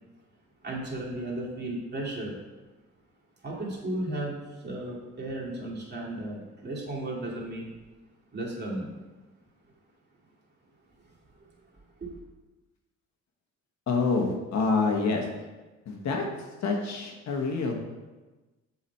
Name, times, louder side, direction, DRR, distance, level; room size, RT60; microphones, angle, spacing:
voice 1, 0.6-2.4 3.4-7.7 8.3-8.9 11.0-11.1 11.4-11.5 12.0-12.2, right 1 dB, 35° right, -5 dB, 2.3 m, -35 dB
voice 2, 13.9-15.2 15.9-16.2 16.6-17.7, left 4 dB, 65° left, 1 dB, 1.2 m, -27 dB
7.1 x 3.9 x 4.4 m, 1.2 s
cardioid pair, 90°, 30 cm